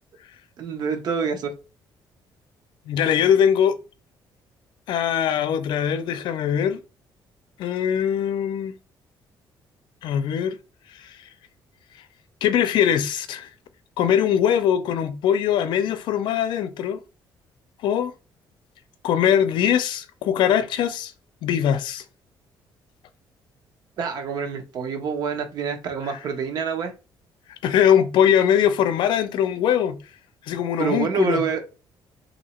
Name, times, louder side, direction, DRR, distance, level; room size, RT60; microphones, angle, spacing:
voice 1, 0.6-1.5 24.0-26.9 30.8-31.6, right 6 dB, 55° right, 0.8 m, -26 dB
voice 2, 2.9-3.8 4.9-6.8 7.6-8.7 10.0-10.6 11.0-11.2 12.4-13.5 14.0-17.0 17.8-18.1 19.0-21.1 21.4-22.0 26.1-26.2 27.6-30.0 30.5-31.4, left 9 dB, 70° left, 0.5 m, -21 dB
2.9 x 2.7 x 4.2 m
cardioid pair, 165°, 8 cm